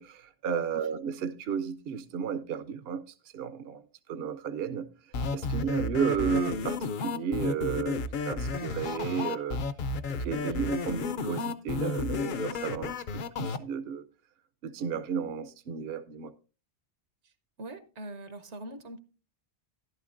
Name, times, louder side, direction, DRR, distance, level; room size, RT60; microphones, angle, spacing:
voice 1, 0.0-3.0 3.3-3.8 4.1-4.9 5.3-8.0 8.3-9.6 10.2-12.9 13.4-14.0 14.6-16.3, right 7 dB, 65° right, 0.8 m, -33 dB
sound 1, 5.1-13.6, left 4 dB, 55° left, 0.7 m, -32 dB
voice 2, 17.6-19.0, right 1 dB, 80° right, 1.4 m, -42 dB
12.5 x 11.5 x 2.5 m
omnidirectional pair, 1.1 m